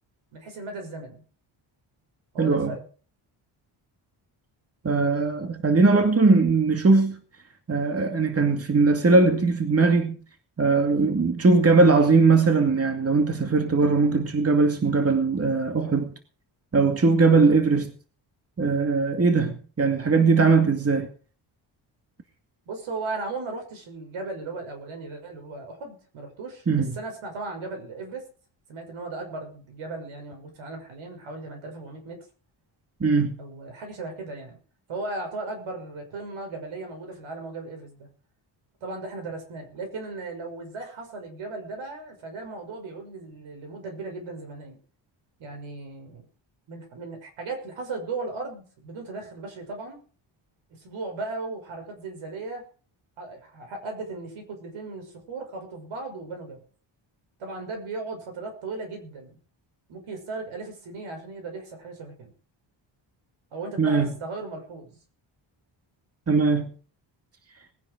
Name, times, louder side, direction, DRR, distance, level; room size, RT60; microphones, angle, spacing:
voice 1, 0.3-1.2 2.3-2.8 22.7-26.6 26.9-28.3 28.7-32.2 33.4-34.6 34.9-38.1 38.8-44.8 45.4-46.3 46.7-50.0 50.8-52.7 53.2-56.6 57.4-59.4 59.9-62.3 63.5-65.0, right 3 dB, 85° right, 6.1 m, -36 dB
voice 2, 2.4-2.8 4.8-7.2 7.7-10.2 10.6-16.1 16.7-17.9 18.6-21.1 26.7-27.0 33.0-33.3 63.8-64.1 66.3-66.7, right 4 dB, 30° right, 2.4 m, -20 dB
20.0 x 9.9 x 5.1 m
cardioid pair, 90°, 47 cm